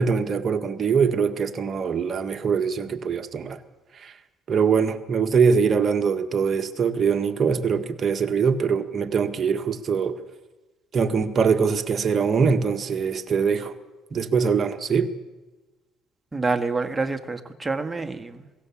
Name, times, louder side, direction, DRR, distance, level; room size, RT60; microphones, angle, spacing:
voice 1, 0.0-3.6 4.0-4.1 4.5-10.2 10.9-13.7 14.1-15.1, right 6 dB, 40° right, 1.6 m, -23 dB
voice 2, 16.3-18.4, right 3 dB, 15° right, 1.6 m, -27 dB
22.5 x 16.5 x 7.2 m
cardioid pair, 100°, 0 cm